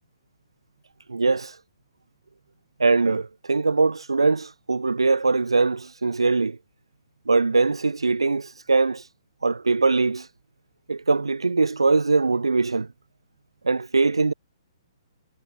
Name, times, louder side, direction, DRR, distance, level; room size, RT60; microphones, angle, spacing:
voice 1, 1.1-1.6 2.8-6.6 7.3-9.1 9.4-10.3 10.9-12.9 13.6-14.3, right 3 dB, 75° right, 0.3 m, -22 dB
figure-of-eight pair, 125°, 3 cm